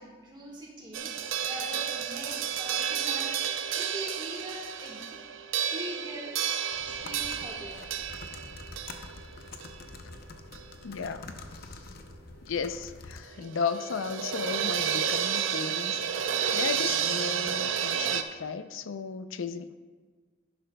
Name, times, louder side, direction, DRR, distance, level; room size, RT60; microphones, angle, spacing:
voice 1, 0.0-3.4 3.7-5.2 5.7-6.4 6.9-7.9, right 1 dB, 20° right, -3 dB, 1.5 m, -42 dB
sound 1, 0.9-10.9 11.1-11.2 13.3-18.2, right 8 dB, 80° right, 0.6 m, -31 dB
sound 2, 6.7-13.2, left 3 dB, 50° left, 0.7 m, -46 dB
voice 2, 10.8-11.3 11.6-11.8 12.4-19.7, left 5 dB, 90° left, 12 dB, 0.5 m, -35 dB
11.0 x 10.5 x 2.2 m, 1.5 s
head